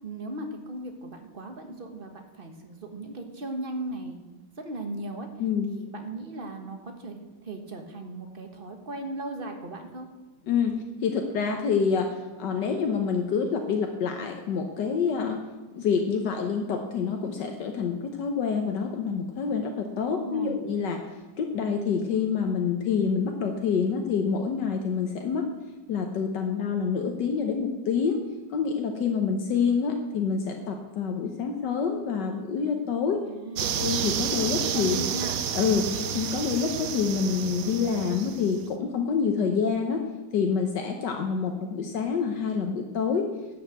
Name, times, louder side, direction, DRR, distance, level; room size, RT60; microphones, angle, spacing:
voice 1, 0.0-4.2 4.6-5.3 5.7-10.1 20.1-20.6 33.3-33.8 34.5-35.4, right 2 dB, 35° right, 4 dB, 1.4 m, -37 dB
voice 2, 10.5-15.4 15.7-21.0 21.4-25.5 25.9-28.2 28.5-33.2 33.6-35.0 35.5-40.0 40.3-43.3, left 6 dB, 75° left, 3 dB, 1.6 m, -27 dB
sound 1, 33.6-38.6, right 8 dB, 60° right, 1.0 m, -30 dB
11.0 x 6.4 x 7.7 m, 1.1 s
omnidirectional pair, 1.9 m